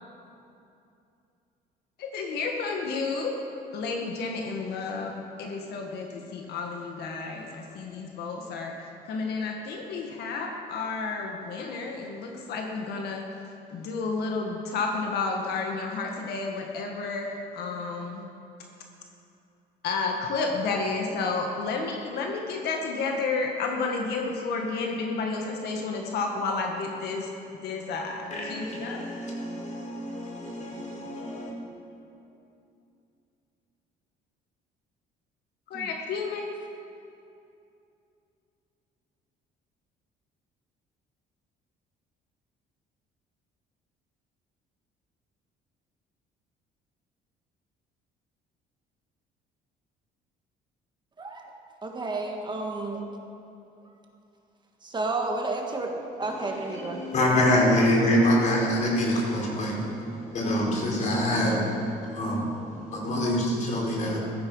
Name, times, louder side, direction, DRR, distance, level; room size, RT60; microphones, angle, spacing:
voice 1, 2.0-3.4 3.7-8.7 9.1-13.2 13.7-18.2 19.8-27.3 27.6-29.0 35.7-36.5, left 4 dB, 75° left, 1 dB, 1.7 m, -31 dB
voice 2, 28.3-31.5 56.2-64.2, left 1 dB, 45° left, -3 dB, 4.4 m, -26 dB
voice 3, 51.8-53.1 54.8-57.1, right 2 dB, 25° right, 2 dB, 1.7 m, -31 dB
15.0 x 13.5 x 5.5 m, 2.7 s
cardioid pair, 110°, 17 cm